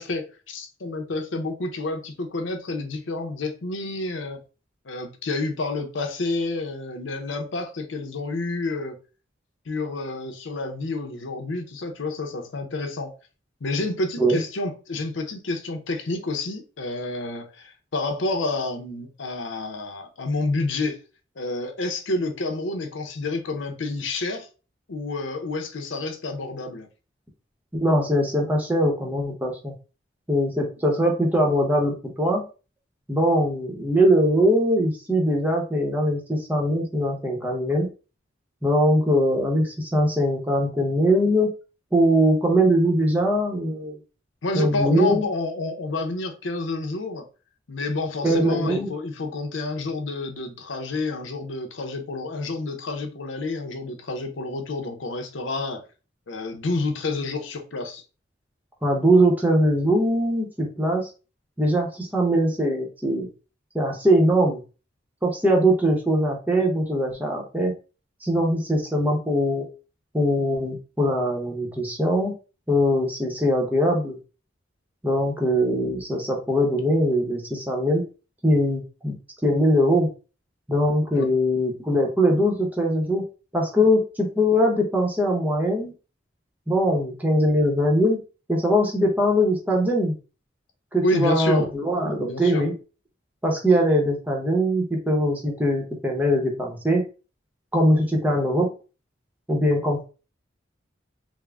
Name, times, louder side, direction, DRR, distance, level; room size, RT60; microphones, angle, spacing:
voice 1, 0.0-4.4 4.8-9.0 9.7-13.1 13.6-21.0 21.4-24.5 24.9-26.9 44.4-47.2 47.7-55.8 56.3-58.0 81.1-81.3 91.0-91.7 92.2-92.6, left 2 dB, 85° left, 0.7 m, -29 dB
voice 2, 27.7-29.7 30.3-32.4 33.1-37.9 38.6-41.5 41.9-44.0 44.5-45.3 48.2-48.9 58.8-61.1 61.6-63.3 63.7-64.6 65.2-67.7 68.2-69.7 70.1-72.3 72.7-74.2 75.0-78.0 78.4-79.1 79.4-80.1 80.7-83.2 83.5-85.9 86.7-88.2 88.5-90.1 90.9-92.7 93.4-97.0 97.7-98.7 99.5-100.0, equal, 10° right, 0.8 m, -21 dB
3.6 x 2.0 x 3.4 m
head